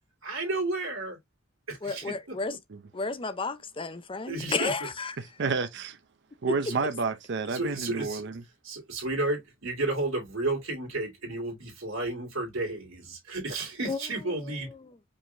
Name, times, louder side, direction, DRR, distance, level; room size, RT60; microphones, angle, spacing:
voice 1, 0.2-1.2 1.7-2.4 4.3-4.9 6.6-6.8 7.5-8.2 8.6-14.7, right 2 dB, 85° right, 2.1 m, -32 dB
voice 2, 1.8-2.5 2.9-4.9 13.9-14.0, left 4 dB, 25° left, 0.6 m, -31 dB
voice 3, 5.2-5.9 6.4-8.4, right 4 dB, 60° right, 0.6 m, -30 dB
5.2 x 3.6 x 2.6 m
head